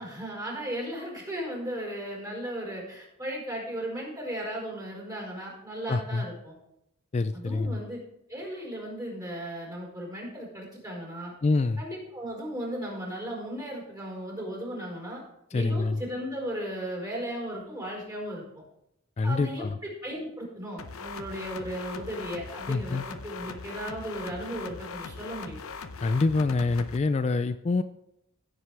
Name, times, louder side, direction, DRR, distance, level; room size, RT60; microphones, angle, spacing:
voice 1, 0.0-6.5 7.3-8.0 8.3-11.3 11.8-15.2 15.5-18.4 19.2-25.6, equal, 20° right, -2 dB, 4.6 m, -36 dB
voice 2, 5.9-6.2 7.1-7.8 11.4-11.8 15.5-16.0 19.2-19.8 22.7-23.0 26.0-27.8, left 3 dB, 30° left, 12 dB, 0.3 m, -26 dB
sound 1, 20.8-27.0, left 5 dB, 80° left, 0.8 m, -40 dB
15.5 x 7.8 x 3.4 m, 0.83 s
head